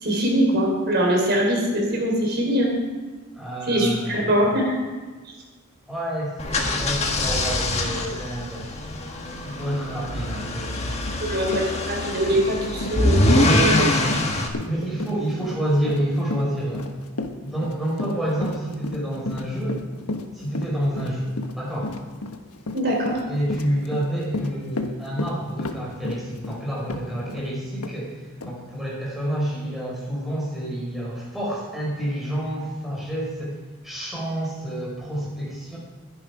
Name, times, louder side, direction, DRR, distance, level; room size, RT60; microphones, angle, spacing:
voice 1, 0.0-2.7 3.7-4.7 11.2-13.7 14.1-14.2 22.7-23.1, right 1 dB, 45° right, 0 dB, 4.5 m, -22 dB
voice 2, 3.3-4.3 5.9-8.7 9.4-11.1 13.4-13.7 14.7-16.9 17.4-19.8 20.3-21.9 23.3-33.6 33.8-35.8, right 1 dB, ahead, -6 dB, 5.4 m, -28 dB
sound 1, 6.4-14.5, left 1 dB, 30° left, 1.5 m, -24 dB
Run, 11.1-11.2 11.5-27.5 27.8-28.0 28.4-28.5, left 2 dB, 90° left, 1.3 m, -33 dB
21.0 x 10.5 x 5.0 m, 1.3 s
head